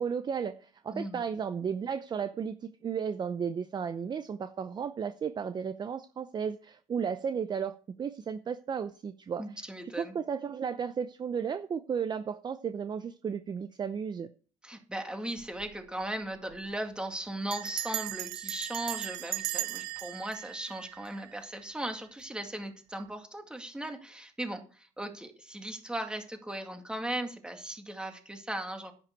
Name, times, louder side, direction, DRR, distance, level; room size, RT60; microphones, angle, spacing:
voice 1, 0.0-9.4 9.9-14.3, right 7 dB, 30° right, 0.7 m, -34 dB
voice 2, 0.9-1.3 9.4-10.2 14.6-28.9, right 1 dB, 5° right, 2.2 m, -37 dB
Bell, 15.4-15.7 16.0-16.1 16.3-16.7 17.5-21.6, right 18 dB, 80° right, 0.7 m, -37 dB
10.5 x 9.1 x 4.7 m
cardioid pair, 105°, 14 cm